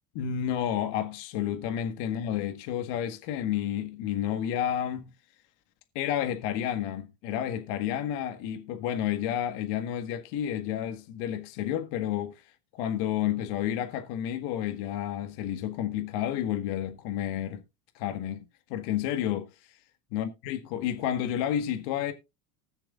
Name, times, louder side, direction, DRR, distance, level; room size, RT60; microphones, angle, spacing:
voice 1, 0.1-5.1 5.9-17.6 17.9-19.8 20.1-22.1, left 10 dB, 60° left, 1.7 m, -31 dB
20.0 x 6.7 x 2.4 m
hypercardioid pair, 90°, 44 cm